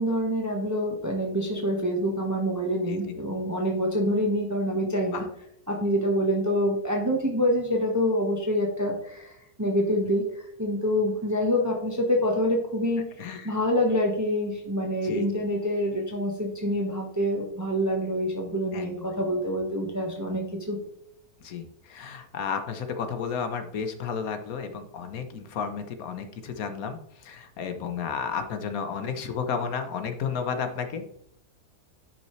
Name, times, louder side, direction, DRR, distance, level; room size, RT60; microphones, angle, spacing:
voice 1, 0.0-5.2 5.7-13.0 13.4-20.8, equal, 10° right, 0 dB, 1.2 m, -26 dB
voice 2, 13.2-13.5 15.0-15.2 18.7-18.9 21.4-31.1, left 6 dB, 70° left, 7 dB, 1.3 m, -32 dB
10.5 x 5.4 x 3.2 m, 0.74 s
omnidirectional pair, 1.6 m